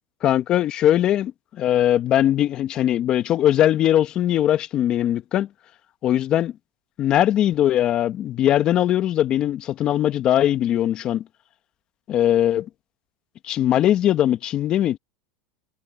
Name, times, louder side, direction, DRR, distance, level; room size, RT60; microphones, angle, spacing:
voice 1, 0.2-1.3 1.6-5.5 6.0-6.5 7.0-11.2 12.1-12.7 13.4-15.0, left 11 dB, 40° left, 1.4 m, -20 dB
supercardioid pair, 120°, 2 cm